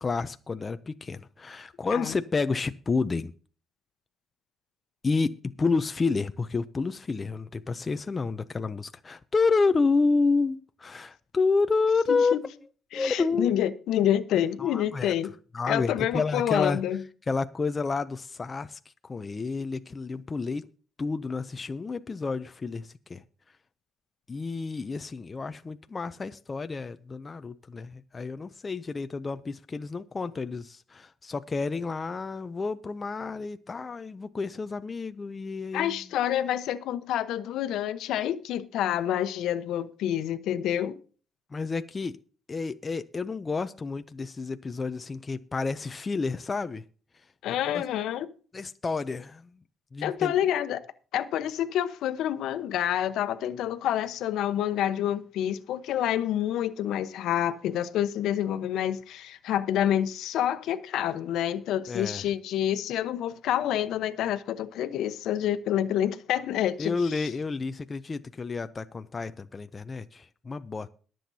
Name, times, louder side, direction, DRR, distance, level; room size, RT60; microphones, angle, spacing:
voice 1, 0.0-3.3 5.0-12.4 12.9-13.5 14.6-15.1 15.5-16.8 17.3-20.7 21.0-23.2 24.3-36.0 41.5-42.2 42.5-46.8 47.7-47.8 48.5-49.5 49.9-50.3 61.9-62.3 66.8-70.9, left 4 dB, 20° left, 0.4 m, -29 dB
voice 2, 12.1-12.4 12.9-15.3 15.7-17.0 35.7-41.0 47.4-48.3 50.0-50.8 51.1-67.3, left 11 dB, 70° left, 0.9 m, -28 dB
22.0 x 7.6 x 2.7 m
cardioid pair, 155°, 0 cm